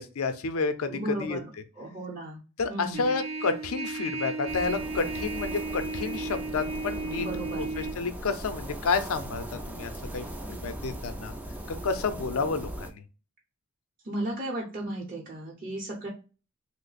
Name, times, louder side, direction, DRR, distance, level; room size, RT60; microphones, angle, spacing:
voice 1, 0.0-1.4 2.6-7.3 7.6-11.3 11.7-13.0, left 4 dB, 80° left, 9 dB, 0.5 m, -30 dB
voice 2, 0.9-1.5 1.8-2.4 2.7-3.1 7.2-7.7 14.0-16.1, right 1 dB, 40° right, -3 dB, 0.7 m, -35 dB
Trumpet, 2.9-8.0, right 3 dB, 70° right, 0.5 m, -34 dB
sound 1, 4.5-12.9, right 1 dB, 10° right, 0.3 m, -39 dB
3.2 x 2.0 x 3.9 m, 0.33 s
head